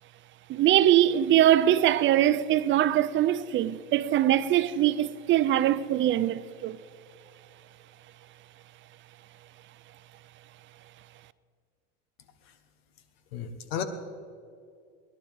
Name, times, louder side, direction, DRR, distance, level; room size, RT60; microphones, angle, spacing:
voice 1, 0.5-6.8, right 12 dB, 40° right, 0.5 m, -22 dB
voice 2, 13.3-13.8, left 8 dB, 90° left, 1.3 m, -33 dB
21.0 x 11.5 x 3.6 m
supercardioid pair, 105°, 29 cm